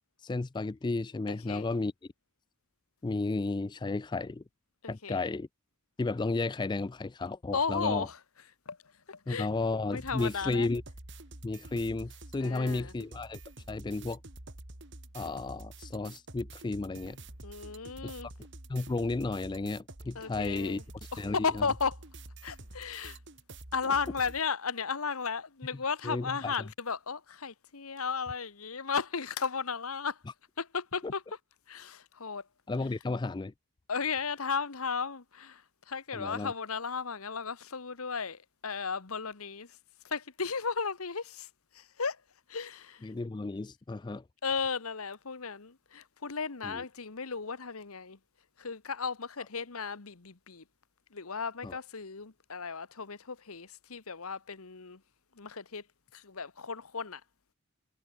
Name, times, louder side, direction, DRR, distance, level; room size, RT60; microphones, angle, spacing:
voice 1, 0.2-1.9 3.0-4.4 4.9-5.5 6.0-8.1 9.3-10.8 11.4-13.4 13.7-14.2 15.1-17.2 18.7-20.8 21.2-21.7 26.0-26.5 32.7-33.5 36.1-36.5 43.0-44.2 46.6-46.8 51.6-51.8, left 3 dB, 20° left, 0.3 m, -33 dB
voice 2, 1.3-1.7 4.8-5.2 7.5-8.2 8.7-8.8 9.1-9.5 9.9-10.7 12.4-12.9 17.4-18.3 20.1-20.8 21.1-22.0 22.4-23.2 23.7-30.2 30.6-31.2 31.7-32.4 32.8-32.9 33.9-35.6 35.9-39.8 40.0-41.5 41.7-42.2 42.5-43.1 44.4-48.2 48.6-50.6 51.1-55.0 55.4-55.8 56.1-57.2, left 5 dB, 85° left, 1.4 m, -35 dB
sound 1, 10.0-24.4, right 2 dB, 55° right, 3.4 m, -48 dB
head